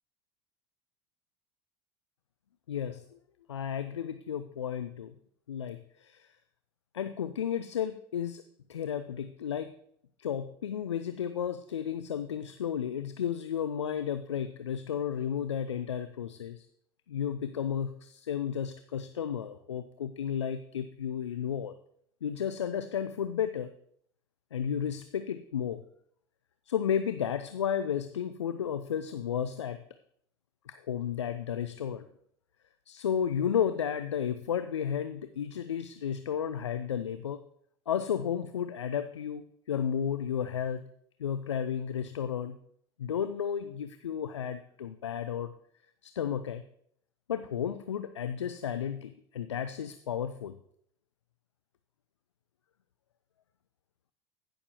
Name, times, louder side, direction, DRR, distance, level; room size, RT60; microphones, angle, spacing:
voice 1, 2.7-3.0 3.5-5.1 5.5-6.3 6.9-8.4 8.7-9.7 10.2-16.7 17.1-21.7 22.2-23.7 24.5-25.8 26.7-29.8 30.7-32.1 32.9-37.4 37.9-40.8 41.2-42.6 43.0-45.5 46.0-46.6 47.3-50.5, left 8 dB, 85° left, 10 dB, 0.4 m, -33 dB
15.0 x 6.5 x 2.9 m, 0.67 s
figure-of-eight pair, 75°, 15 cm